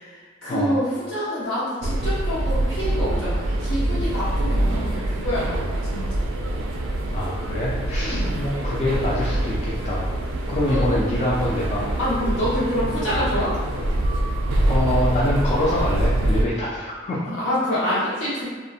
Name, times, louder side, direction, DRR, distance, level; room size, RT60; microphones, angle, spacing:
voice 1, 0.0-6.2 8.0-8.3 10.7-11.0 12.0-13.5 17.3-18.4, equal, 85° left, -11 dB, 1.2 m, -27 dB
sound 1, 1.8-16.5, right 1 dB, 75° right, 0.3 m, -24 dB
voice 2, 7.1-10.1 10.5-11.9 14.6-17.3, left 1 dB, 35° left, -6 dB, 0.3 m, -25 dB
2.4 x 2.0 x 2.6 m, 1.4 s
head